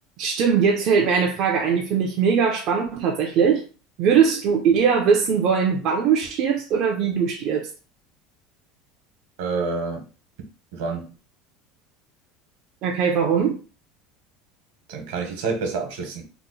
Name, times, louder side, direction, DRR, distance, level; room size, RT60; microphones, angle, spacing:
voice 1, 0.2-3.7 4.0-7.7 12.8-13.6, right 6 dB, 40° right, 0.4 m, -20 dB
voice 2, 9.4-10.0 10.7-11.0 14.9-16.2, right 4 dB, 75° right, 1.0 m, -27 dB
2.8 x 2.1 x 3.9 m
cardioid pair, 175°, 0 cm